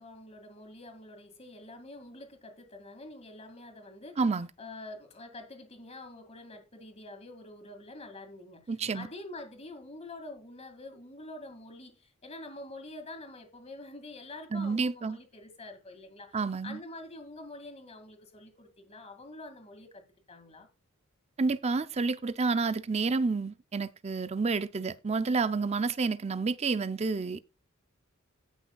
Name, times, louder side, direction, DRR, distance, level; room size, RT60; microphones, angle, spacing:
voice 1, 0.0-4.2 4.6-16.4 16.6-20.7, left 2 dB, 30° left, 2.1 m, -46 dB
voice 2, 4.2-4.5 8.7-9.1 14.5-15.2 16.3-16.8 21.4-27.4, right 4 dB, 30° right, 0.5 m, -29 dB
17.5 x 6.1 x 2.3 m
head